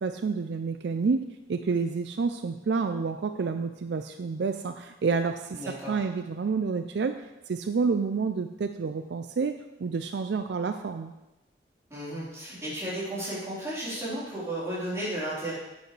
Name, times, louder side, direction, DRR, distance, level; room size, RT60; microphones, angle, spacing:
voice 1, 0.0-1.2 1.5-11.1, right 4 dB, 65° right, 8 dB, 0.4 m, -29 dB
voice 2, 5.5-5.9 11.9-15.6, right 1 dB, 15° right, -9 dB, 4.1 m, -33 dB
12.0 x 8.2 x 3.3 m, 0.99 s
head